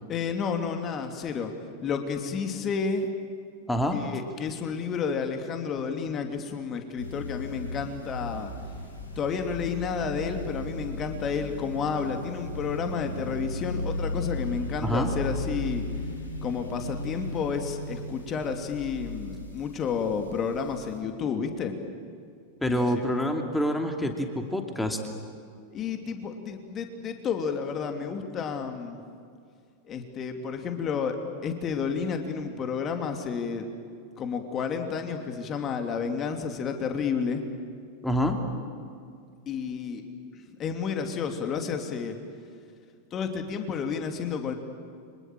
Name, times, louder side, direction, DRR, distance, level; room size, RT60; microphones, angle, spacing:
voice 1, 0.1-1.5 1.8-3.1 3.9-8.5 9.2-15.8 16.4-21.8 22.7-23.0 25.7-29.0 29.9-31.2 31.4-33.7 34.2-37.4 39.5-40.0 40.3-42.2 43.1-44.5, left 6 dB, 30° left, 5 dB, 2.8 m, -31 dB
voice 2, 3.7-4.0 14.8-15.1 22.6-25.0 38.0-38.4, equal, 5° left, 4 dB, 2.8 m, -26 dB
sound 1, 7.0-21.0, left 1 dB, 80° left, 4.7 m, -36 dB
30.0 x 25.0 x 7.7 m, 2.3 s
figure-of-eight pair, 90°, 0 cm